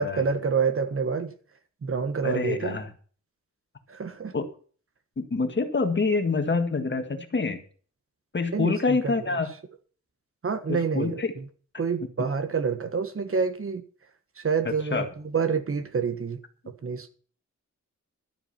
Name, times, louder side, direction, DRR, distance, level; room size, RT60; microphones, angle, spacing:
voice 1, 0.0-1.3 1.8-2.8 3.9-4.3 8.5-9.1 10.4-11.4 11.8-13.8 14.4-15.1 15.3-16.4 16.8-17.1, right 5 dB, 50° right, 1.4 m, -27 dB
voice 2, 2.2-2.9 4.3-4.5 5.2-7.6 8.3-9.5 10.7-11.3 14.7-15.1, left 4 dB, 40° left, 1.8 m, -26 dB
12.5 x 8.2 x 5.9 m
wide cardioid pair, 170°, 30 cm